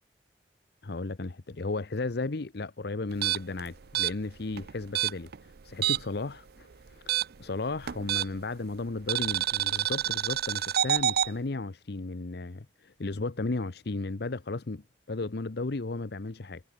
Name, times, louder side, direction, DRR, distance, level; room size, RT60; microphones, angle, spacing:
voice 1, 0.8-7.1 7.4-16.6, left 3 dB, 65° left, 0.9 m, -34 dB
sound 1, 3.1-6.2 6.5-8.5 9.1-11.3, right 11 dB, 65° right, 0.5 m, -28 dB
head